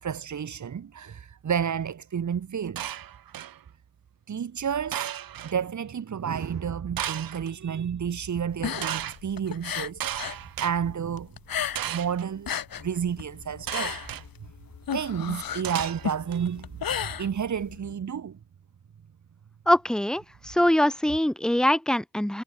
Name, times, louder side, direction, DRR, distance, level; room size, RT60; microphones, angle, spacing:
voice 1, 0.0-2.8 4.3-5.1 5.4-11.3 11.8-14.0 14.9-18.4, right 7 dB, 50° right, 1.4 m, -31 dB
sound 1, 2.8-3.6 4.9-5.5 7.0-7.5 8.8-9.2 10.0-10.7 11.7-12.2 13.7-14.2 15.6-16.4, right 11 dB, 70° right, 1.0 m, -34 dB
sound 2, 8.5-10.4 10.7-12.1 12.3-17.8, left 9 dB, 65° left, 2.3 m, -33 dB
sound 3, 12.8-18.0, left 6 dB, 50° left, 5.4 m, -52 dB
voice 2, 19.7-22.4, left 1 dB, ahead, 1.0 m, -23 dB
cardioid pair, 85°, 37 cm